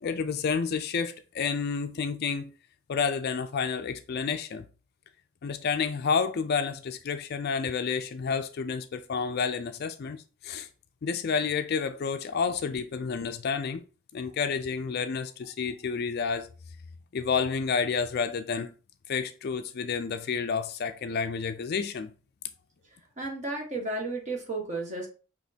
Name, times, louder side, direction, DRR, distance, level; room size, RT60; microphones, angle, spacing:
voice 1, 0.0-2.5 2.9-4.6 5.4-10.7 11.0-13.8 14.1-16.5 17.1-18.7 19.1-22.1, left 5 dB, 45° left, 0.3 m, -30 dB
voice 2, 23.2-25.1, right 2 dB, 30° right, 1.3 m, -33 dB
6.0 x 3.0 x 2.7 m
head